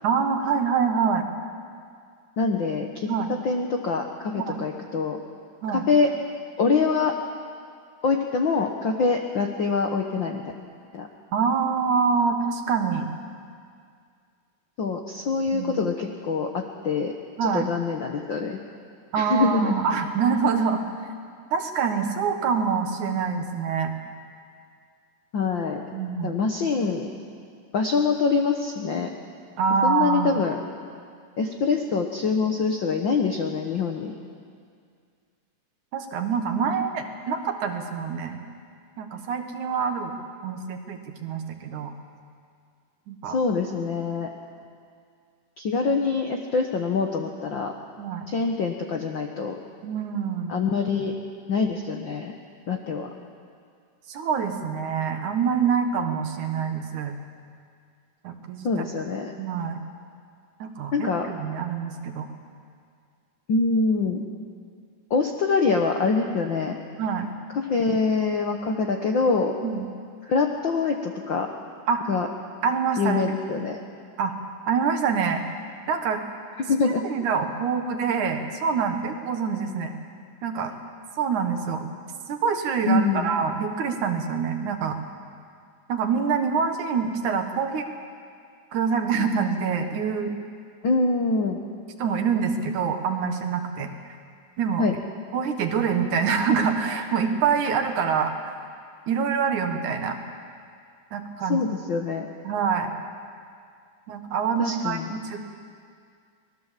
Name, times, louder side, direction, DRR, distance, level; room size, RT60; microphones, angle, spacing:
voice 1, 0.0-1.2 3.1-3.3 4.4-4.6 5.6-5.8 11.3-13.1 15.5-15.8 17.4-17.7 19.1-20.8 21.5-23.9 25.9-26.3 29.6-30.5 35.9-38.4 39.0-40.1 40.4-41.9 43.1-43.4 48.0-48.3 49.8-50.6 54.1-57.2 58.2-58.9 59.4-59.8 60.6-62.3 67.0-67.3 69.6-69.9 71.9-72.0 72.6-73.2 74.2-74.3 74.7-75.4 75.9-76.2 77.1-79.9 80.4-80.7 81.2-81.9 82.3-85.0 85.9-87.9 88.7-90.3 92.0-93.9 94.6-94.8 95.3-98.6 99.1-100.2 101.1-101.6 102.4-102.9 104.1-105.4, right 6 dB, 70° right, 5 dB, 2.8 m, -25 dB
voice 2, 2.4-3.1 3.4-5.2 5.7-6.1 6.6-7.1 8.0-10.4 10.9-11.1 14.8-17.1 17.4-18.6 19.1-19.7 25.3-25.8 26.2-27.1 27.7-29.1 29.8-30.6 31.4-34.1 43.3-44.3 45.6-47.7 48.3-49.6 50.5-51.1 51.5-52.4 52.7-53.1 58.6-59.3 60.9-61.3 63.5-64.2 65.1-66.8 67.5-69.6 70.3-71.5 72.1-72.3 73.0-73.8 76.6-77.0 82.9-83.3 90.8-91.6 94.8-95.0 101.5-102.3 104.6-105.1, left 4 dB, 65° left, 3 dB, 1.2 m, -24 dB
24.0 x 19.5 x 7.5 m, 2.2 s
omnidirectional pair, 3.8 m